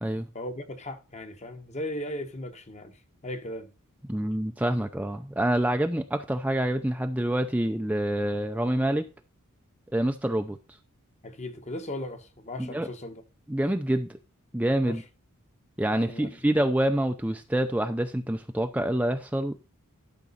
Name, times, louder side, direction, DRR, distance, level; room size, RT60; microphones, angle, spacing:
voice 1, 0.3-3.7 11.2-13.2 14.9-15.0 15.9-16.4, left 1 dB, 30° left, 1.3 m, -37 dB
voice 2, 4.1-9.1 9.9-10.6 12.6-12.9 13.5-14.2 14.5-15.0 15.8-19.6, right 1 dB, 5° right, 0.6 m, -26 dB
12.5 x 6.2 x 4.1 m
head